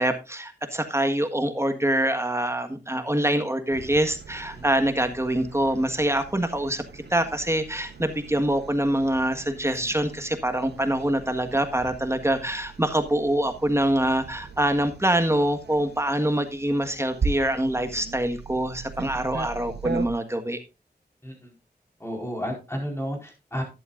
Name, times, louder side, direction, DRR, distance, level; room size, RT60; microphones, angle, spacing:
voice 1, 0.0-20.6, right 1 dB, 15° right, 7 dB, 1.5 m, -25 dB
sound 1, 3.7-20.1, right 4 dB, 85° right, 1.0 m, -39 dB
voice 2, 22.0-23.6, equal, 15° left, 2 dB, 4.6 m, -32 dB
12.0 x 10.5 x 2.5 m, 0.27 s
wide cardioid pair, 65°, 17 cm